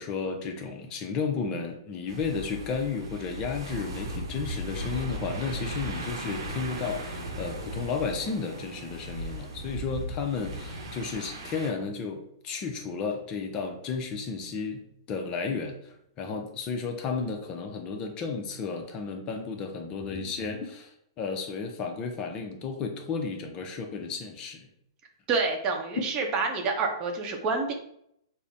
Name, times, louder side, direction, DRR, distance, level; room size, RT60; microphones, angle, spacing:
voice 1, 0.0-24.7, left 5 dB, 30° left, 5 dB, 0.5 m, -33 dB
sound 1, 2.1-11.7, equal, 70° right, 0.9 m, -37 dB
voice 2, 25.3-27.7, right 4 dB, 30° right, 2 dB, 0.7 m, -28 dB
5.4 x 2.1 x 2.6 m, 0.72 s
hypercardioid pair, 125°, 2 cm